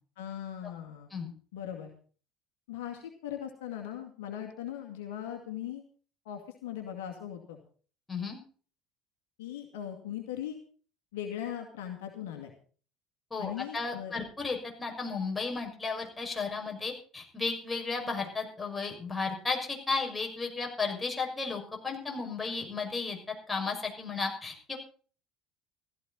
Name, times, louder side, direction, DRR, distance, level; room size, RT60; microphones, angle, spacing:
voice 1, 0.2-1.1 1.5-1.9 2.7-5.8 6.3-7.6 9.4-10.6 11.1-12.5 13.4-14.1, left 10 dB, 75° left, 3 dB, 2.2 m, -39 dB
voice 2, 8.1-8.4 13.3-24.8, left 4 dB, 20° left, 2 dB, 6.0 m, -34 dB
15.5 x 13.5 x 4.1 m, 0.42 s
hypercardioid pair, 65°, 0 cm